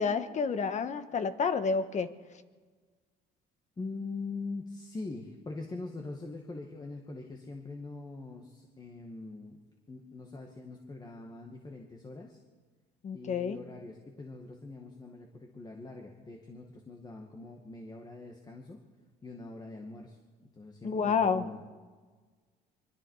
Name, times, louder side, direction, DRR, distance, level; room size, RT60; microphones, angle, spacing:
voice 1, 0.0-2.1 13.0-13.6 20.8-21.4, left 5 dB, 45° left, 10 dB, 1.5 m, -29 dB
voice 2, 3.8-9.6 9.9-12.4 13.1-18.8 19.2-21.7, left 3 dB, 25° left, 2 dB, 2.1 m, -43 dB
24.5 x 24.0 x 4.9 m, 1.4 s
cardioid pair, 110°, 17 cm